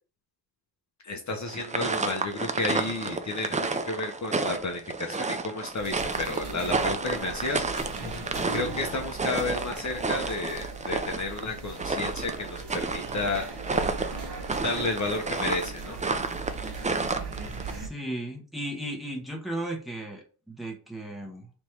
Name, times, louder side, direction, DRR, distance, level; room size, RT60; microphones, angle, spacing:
voice 1, 1.0-7.6 8.5-13.5 14.6-16.0, left 2 dB, 45° left, 3 dB, 0.8 m, -32 dB
sound 1, 1.5-17.7, right 3 dB, 20° right, 0.4 m, -31 dB
sound 2, 5.8-17.9, right 3 dB, 75° right, 1.5 m, -39 dB
voice 2, 17.7-21.5, right 1 dB, ahead, 0 dB, 1.2 m, -35 dB
3.5 x 3.1 x 4.5 m, 0.36 s
wide cardioid pair, 125°, 41 cm